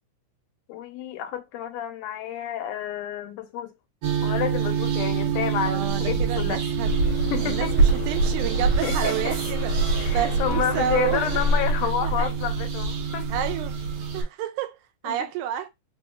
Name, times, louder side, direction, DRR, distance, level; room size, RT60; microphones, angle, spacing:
voice 1, 0.7-3.7 4.2-6.6 7.3-7.7 8.8-9.4 10.0-13.3 15.1-15.3, left 10 dB, 85° left, 2.2 m, -30 dB
sound 1, 4.0-14.2, right 4 dB, 70° right, 1.9 m, -25 dB
voice 2, 5.7-6.9 7.4-9.7 10.1-11.3 12.0-12.3 13.3-13.8 14.1-14.8 15.0-15.7, right 11 dB, 85° right, 2.0 m, -30 dB
sound 2, 6.8-11.7, left 6 dB, 70° left, 1.4 m, -40 dB
4.9 x 2.6 x 2.2 m
omnidirectional pair, 3.5 m